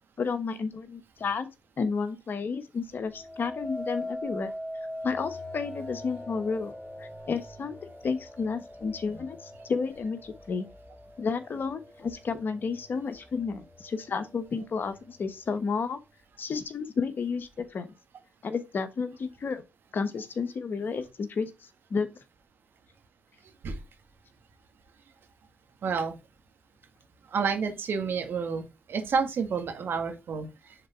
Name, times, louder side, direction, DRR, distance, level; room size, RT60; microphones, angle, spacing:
voice 1, 0.2-1.5 1.8-4.5 5.0-10.7 11.2-16.0 16.4-17.9 18.4-19.6 19.9-21.5 21.9-22.1, left 5 dB, 60° left, 1.1 m, -31 dB
sound 1, 3.0-12.2 12.7-13.2, left 1 dB, 15° left, 3.6 m, -41 dB
voice 2, 25.8-26.2 27.3-30.5, right 5 dB, 70° right, 1.6 m, -29 dB
6.5 x 3.8 x 4.4 m
supercardioid pair, 45°, 4 cm